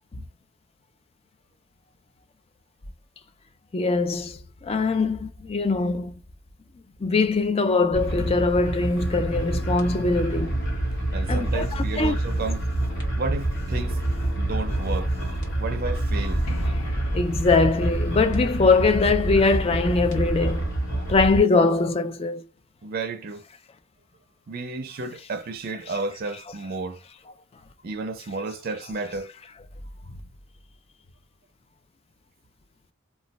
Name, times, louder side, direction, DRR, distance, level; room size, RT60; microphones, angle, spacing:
voice 1, 3.7-6.1 7.0-10.5 11.3-12.1 17.1-20.7 21.1-22.4, left 3 dB, 30° left, 0.3 m, -22 dB
sound 1, 7.9-21.4, right 1 dB, 55° left, 1.0 m, -27 dB
voice 2, 11.1-12.7 13.2-14.0 14.4-15.1 15.6-16.4 22.8-23.4 24.5-27.0 27.8-29.3, right 3 dB, 45° right, 0.4 m, -32 dB
sound 2, 16.5-20.1, left 4 dB, 85° left, 0.5 m, -43 dB
2.3 x 2.1 x 3.8 m
head